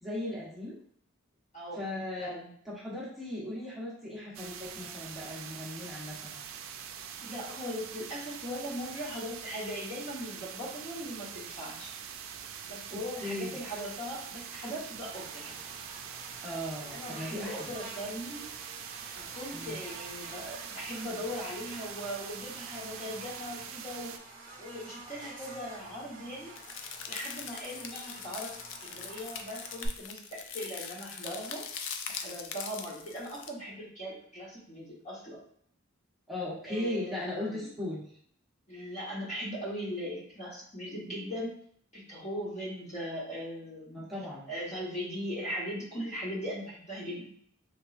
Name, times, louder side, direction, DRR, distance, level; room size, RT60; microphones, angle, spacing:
voice 1, 0.0-0.8 1.7-2.3 2.7-6.4 13.2-13.6 16.4-17.7 19.5-19.8 36.3-38.0 43.9-44.5, left 1 dB, ahead, -8 dB, 0.9 m, -37 dB
voice 2, 1.5-1.9 2.2-2.5 7.2-11.9 12.6-15.6 16.9-18.5 19.2-24.1 24.6-35.4 36.6-37.7 38.7-41.5 41.9-44.1 44.5-47.3, equal, 35° left, -5 dB, 1.1 m, -39 dB
sound 1, 4.3-24.2, right 8 dB, 75° right, 0.3 m, -44 dB
Buzz, 15.1-29.9, right 2 dB, 45° right, 0.9 m, -49 dB
sound 2, 26.5-33.5, left 6 dB, 65° left, 0.4 m, -42 dB
3.5 x 3.0 x 2.4 m, 0.63 s
head